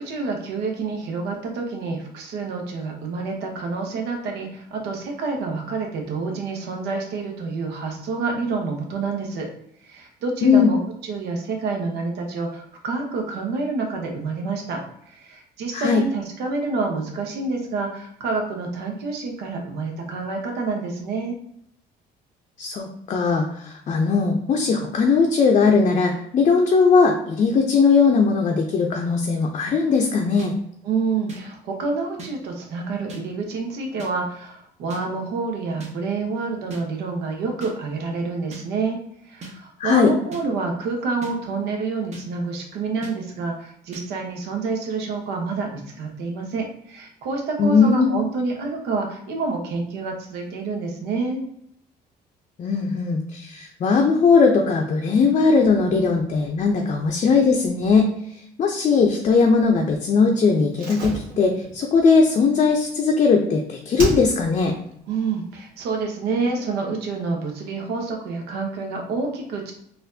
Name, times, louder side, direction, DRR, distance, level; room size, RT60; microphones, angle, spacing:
voice 1, 0.0-9.5 9.8-10.8 11.1-21.4 30.8-39.0 39.3-51.4 65.1-69.7, right 4 dB, 80° right, 2 dB, 1.0 m, -28 dB
voice 2, 22.6-30.5 39.8-40.1 47.6-48.1 52.6-58.1 58.6-64.7, left 4 dB, 40° left, 2 dB, 0.5 m, -19 dB
sound 1, 30.4-30.5 31.3-31.4 32.2-32.3 33.1-33.2 34.0-34.1 34.9-35.0 35.8-35.9 36.7-36.8 37.6-37.7 38.5-38.6 39.4-39.5 40.3-40.4 41.2-41.3 42.1-42.2 43.0-43.1 43.9-44.0, right 3 dB, 40° right, 1.0 m, -37 dB
Slam, 60.7-63.5 63.9-64.7 65.0-65.1, right 2 dB, 60° right, 1.5 m, -32 dB
4.2 x 2.5 x 2.7 m, 0.71 s
cardioid pair, 110°, 17 cm